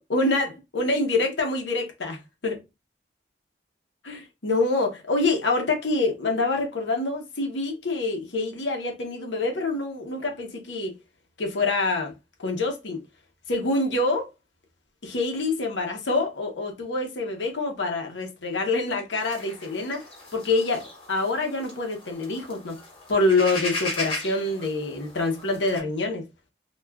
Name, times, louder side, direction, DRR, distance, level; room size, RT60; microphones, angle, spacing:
voice 1, 0.1-2.6 4.0-10.9 11.4-12.1 12.4-13.0 13.5-14.3 15.0-20.0 20.3-22.8 23.1-26.2, left 2 dB, 85° left, 0.8 m, -26 dB
sound 1, 19.2-25.8, left 2 dB, 30° left, 0.8 m, -37 dB
2.4 x 2.2 x 3.4 m
head